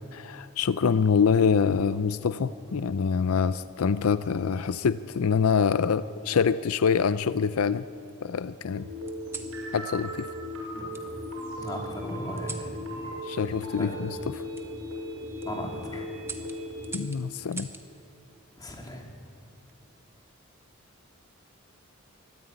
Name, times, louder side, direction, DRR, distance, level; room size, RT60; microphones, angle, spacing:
voice 1, 0.1-7.9 8.2-8.9 9.7-10.3 13.2-14.4 16.9-17.7, left 6 dB, 80° left, 14 dB, 0.5 m, -25 dB
sound 1, 1.7-2.8 3.9-4.3 5.5-6.3 6.9-7.8 9.1-9.6 10.9-11.1 12.4-12.7 14.5-14.7 15.2-15.5 16.2-17.9 19.4-19.8, right 3 dB, 10° right, 1.2 m, -44 dB
sound 2, 8.8-16.9, equal, 80° right, 6.7 m, -37 dB
voice 2, 11.6-12.7 13.8-13.9 15.4-16.1 18.6-19.0, equal, 20° left, 0 dB, 3.0 m, -36 dB
24.0 x 14.0 x 9.4 m, 2.9 s
head